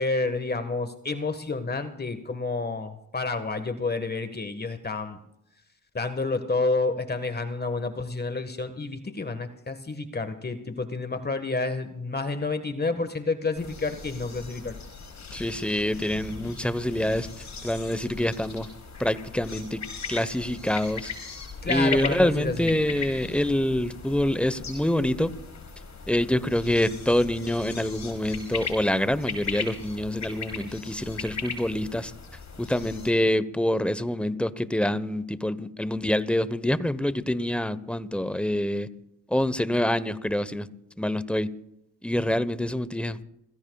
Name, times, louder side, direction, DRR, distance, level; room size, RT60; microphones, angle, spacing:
voice 1, 0.0-5.2 5.9-14.8 21.6-22.7, left 3 dB, 30° left, 9 dB, 1.6 m, -29 dB
sound 1, 13.5-33.1, left 4 dB, 55° left, 5.1 m, -38 dB
voice 2, 15.3-17.3 17.6-18.7 19.0-19.8 20.1-21.1 21.6-25.3 26.1-32.1 32.6-38.9 39.3-40.7 41.0-41.5 42.0-43.2, left 1 dB, 5° left, 14 dB, 1.1 m, -26 dB
28.0 x 16.0 x 2.4 m, 0.83 s
supercardioid pair, 60°, 34 cm